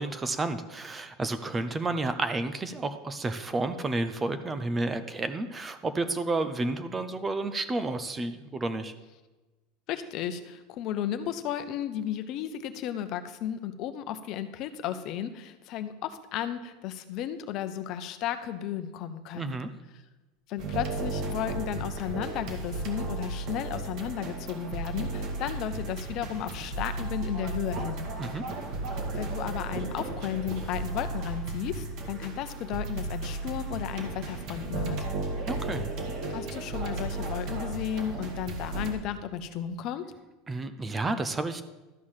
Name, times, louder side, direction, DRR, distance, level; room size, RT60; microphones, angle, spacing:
voice 1, 0.0-8.9 19.3-19.7 28.2-28.4 35.5-35.9 40.5-41.6, right 2 dB, 15° right, 10 dB, 0.7 m, -31 dB
voice 2, 9.9-19.6 20.5-28.1 29.1-35.1 36.3-40.1, left 10 dB, 45° left, 10 dB, 0.8 m, -34 dB
sound 1, 20.6-38.9, right 2 dB, 50° right, 1.9 m, -34 dB
12.5 x 4.7 x 7.4 m, 1.1 s
supercardioid pair, 145°, 0 cm